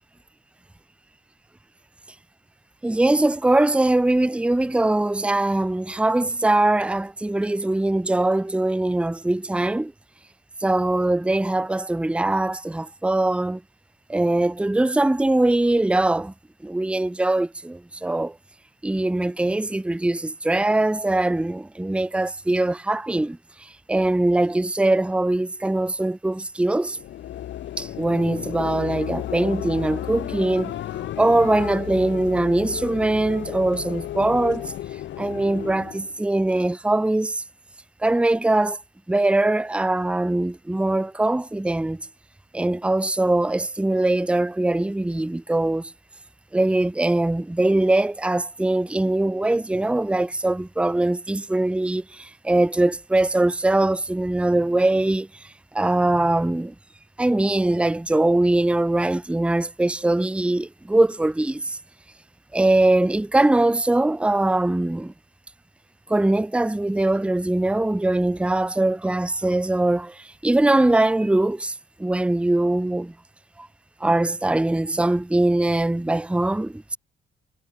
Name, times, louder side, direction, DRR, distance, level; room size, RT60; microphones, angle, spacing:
voice 1, 2.8-9.9 10.6-13.6 14.1-16.3 16.6-18.4 18.8-27.0 27.8-30.7 31.2-34.7 35.2-37.4 38.0-38.8 39.1-42.0 42.5-45.9 46.5-56.7 57.2-61.8 62.5-65.1 66.1-73.1 73.6-73.7 74.0-77.0, right 2 dB, 5° right, 0.7 m, -22 dB
sound 1, 26.8-36.2, left 12 dB, 65° left, 0.9 m, -33 dB
cardioid pair, 90°, 20 cm